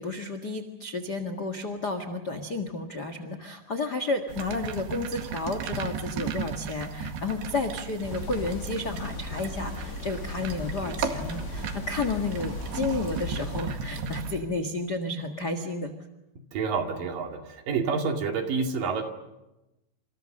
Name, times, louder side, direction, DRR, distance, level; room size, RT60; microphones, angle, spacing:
voice 1, 0.0-15.9, left 3 dB, 60° left, 9 dB, 1.0 m, -31 dB
sound 1, 4.3-14.4, right 5 dB, 70° right, 4.0 m, -35 dB
sound 2, 8.0-13.6, left 4 dB, 90° left, 5.7 m, -38 dB
voice 2, 16.5-19.0, right 5 dB, 55° right, 4 dB, 3.8 m, -28 dB
28.5 x 28.0 x 6.6 m, 0.96 s
omnidirectional pair, 5.0 m